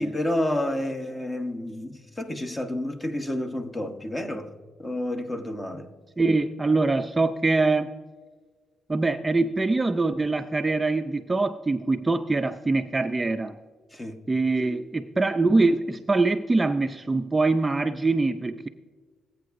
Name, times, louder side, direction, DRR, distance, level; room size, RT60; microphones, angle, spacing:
voice 1, 0.0-4.5 4.8-5.9 13.9-14.2, left 1 dB, 20° left, 1.0 m, -30 dB
voice 2, 6.2-7.9 8.9-13.6 14.3-18.7, right 3 dB, 20° right, 0.4 m, -23 dB
17.5 x 8.5 x 2.6 m
cardioid pair, 90°, 0 cm